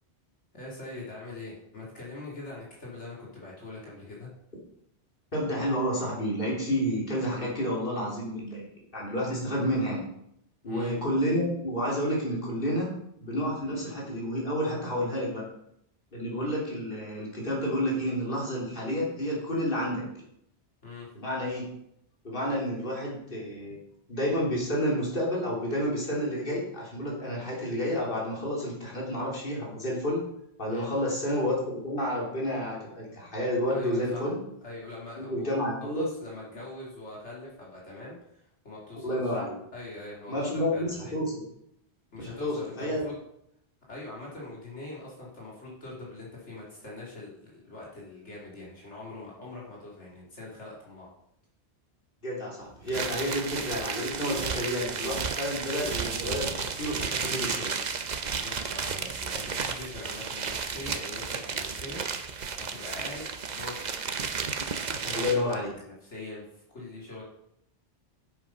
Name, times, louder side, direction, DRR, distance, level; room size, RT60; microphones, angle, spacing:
voice 1, 0.5-4.3 10.6-10.9 20.8-21.1 30.7-30.9 33.7-34.3 34.6-39.3 39.7-41.1 42.1-43.2 43.9-51.1 58.2-63.9 64.7-67.2, left 2 dB, 85° left, -5 dB, 3.0 m, -43 dB
voice 2, 5.3-8.7 8.9-10.0 10.6-12.9 13.2-15.4 16.1-20.0 21.2-21.6 22.2-23.8 24.1-30.2 30.6-34.4 35.1-36.1 39.0-39.6 40.3-41.5 42.2-43.1 52.2-57.7 65.1-65.7, equal, 50° left, -4 dB, 3.5 m, -30 dB
sound 1, 52.9-65.5, right 5 dB, 45° right, 0.8 m, -33 dB
8.4 x 8.0 x 5.4 m, 0.74 s
omnidirectional pair, 1.2 m